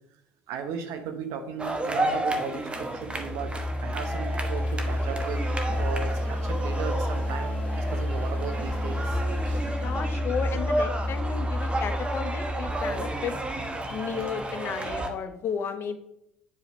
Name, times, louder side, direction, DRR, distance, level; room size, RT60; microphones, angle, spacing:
voice 1, 0.5-3.5 3.8-9.2 9.5-9.6 14.2-14.3, right 6 dB, 65° right, 7 dB, 1.0 m, -36 dB
sound 1, 1.6-15.1, right 1 dB, 20° right, 1.1 m, -32 dB
sound 2, 3.0-14.0, left 1 dB, 25° left, 1.4 m, -30 dB
voice 2, 9.7-13.3 13.9-16.0, left 7 dB, 45° left, 8 dB, 0.9 m, -33 dB
8.4 x 5.0 x 3.1 m, 0.80 s
hypercardioid pair, 65°, 6 cm